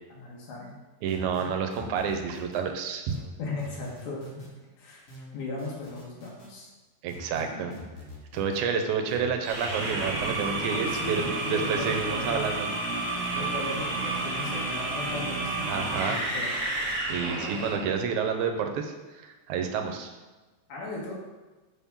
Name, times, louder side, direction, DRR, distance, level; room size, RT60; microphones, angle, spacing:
voice 1, 0.1-0.8 3.4-4.5 4.8-5.0 5.3-6.7 7.5-7.8 10.6-12.5 13.4-16.5 20.7-21.1, left 3 dB, 90° left, -4 dB, 2.7 m, -37 dB
voice 2, 1.0-3.2 7.0-7.7 8.3-12.7 15.7-16.2 17.1-20.1, right 6 dB, 85° right, 5 dB, 2.0 m, -29 dB
sound 1, 1.1-2.7 3.1-4.5 5.1-6.5 7.1-8.7 9.1-10.5 11.1-12.5, equal, 45° left, 1.1 m, -45 dB
sound 2, 9.4-17.9, right 2 dB, 50° right, 0.9 m, -31 dB
6.7 x 3.6 x 5.6 m, 1.2 s
omnidirectional pair, 3.4 m